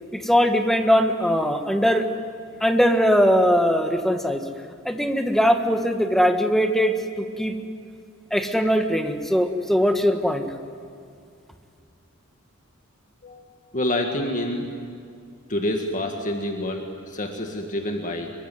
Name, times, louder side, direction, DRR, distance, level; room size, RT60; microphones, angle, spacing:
voice 1, 0.1-2.0 2.6-4.4 4.8-7.5 8.3-10.5, equal, ahead, 5 dB, 1.5 m, -20 dB
voice 2, 13.2-14.7 15.5-18.3, left 1 dB, 40° left, 3 dB, 1.9 m, -27 dB
24.5 x 23.0 x 9.4 m, 2.4 s
head